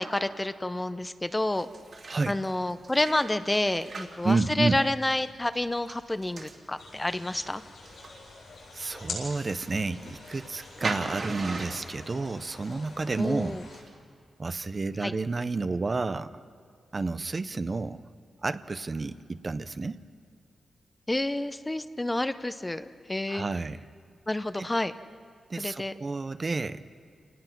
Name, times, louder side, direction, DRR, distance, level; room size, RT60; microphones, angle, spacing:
voice 1, 0.0-1.7 2.3-7.6 13.2-13.6 15.0-15.1 21.1-23.4 24.3-24.9 25.6-25.9, left 1 dB, 15° left, 12 dB, 0.6 m, -29 dB
sound 1, 1.5-6.6 7.0-13.2 13.4-13.9, right 3 dB, 55° right, 2.8 m, -41 dB
voice 2, 4.2-4.8 8.7-13.6 14.4-16.4 16.9-18.0 18.4-20.0 23.3-23.8 24.6-24.7 25.5-26.8, right 3 dB, 35° right, 12 dB, 0.6 m, -30 dB
sound 2, 6.8-13.8, left 3 dB, 80° left, 7.6 m, -45 dB
28.5 x 19.5 x 5.9 m, 2.2 s
wide cardioid pair, 110°, 0 cm